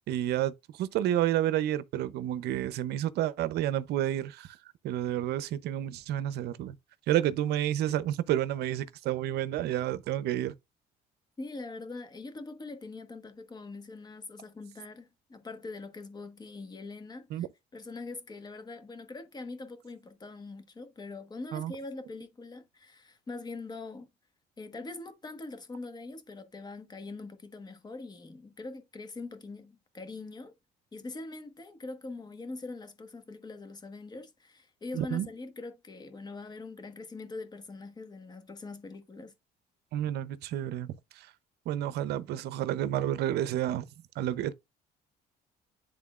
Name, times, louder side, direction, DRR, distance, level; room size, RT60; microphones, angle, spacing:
voice 1, 0.1-4.6 4.8-6.8 7.1-10.5 17.3-17.5 21.5-21.7 34.9-35.3 39.9-41.3 41.7-43.8 44.2-44.5, right 12 dB, 75° right, 0.6 m, -30 dB
voice 2, 11.4-17.5 17.7-24.1 24.6-30.5 30.9-39.3, left 3 dB, 25° left, 1.3 m, -43 dB
11.0 x 3.7 x 2.4 m
cardioid pair, 110°, 17 cm